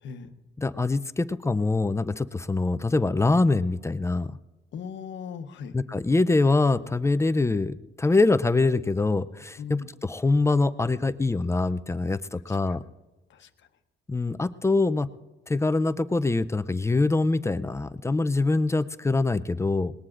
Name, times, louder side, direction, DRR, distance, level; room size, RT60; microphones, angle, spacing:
voice 1, 0.0-0.3 4.7-5.7 9.6-9.9 12.5-12.8 13.3-13.7, left 6 dB, 70° left, 8 dB, 1.0 m, -39 dB
voice 2, 0.6-4.4 5.7-12.8 14.1-15.1 15.5-19.9, left 3 dB, 15° left, 13 dB, 0.4 m, -24 dB
21.5 x 20.0 x 2.5 m, 1.1 s
cardioid pair, 90°, 20 cm